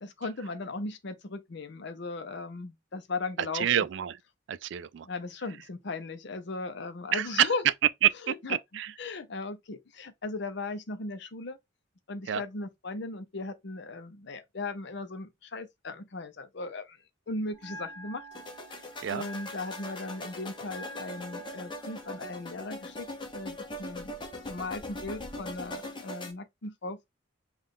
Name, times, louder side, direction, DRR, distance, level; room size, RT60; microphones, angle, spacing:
voice 1, 0.0-3.7 5.0-7.6 8.4-8.6 9.0-11.6 12.1-17.0 17.3-18.2 19.1-23.1 23.3-24.1 24.5-27.1, left 3 dB, 60° left, 0.6 m, -37 dB
voice 2, 3.4-4.2 4.5-5.1 7.1-7.7 8.0-8.9 12.3-12.4 19.0-19.3, right 10 dB, 60° right, 0.3 m, -28 dB
Bell, 17.5-25.5, right 1 dB, 10° left, 2.9 m, -50 dB
sound 1, 18.3-26.3, left 1 dB, 25° left, 0.9 m, -41 dB
5.5 x 2.4 x 3.6 m
head